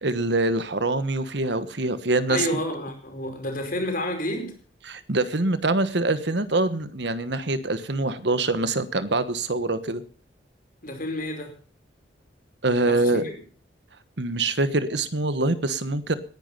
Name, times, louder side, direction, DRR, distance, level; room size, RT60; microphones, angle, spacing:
voice 1, 0.0-2.5 4.9-10.0 12.6-13.2 14.2-16.1, right 2 dB, 65° right, 1.3 m, -24 dB
voice 2, 2.3-4.6 10.8-11.5 12.9-13.3, left 1 dB, 50° left, 5.0 m, -30 dB
19.0 x 10.5 x 5.6 m
head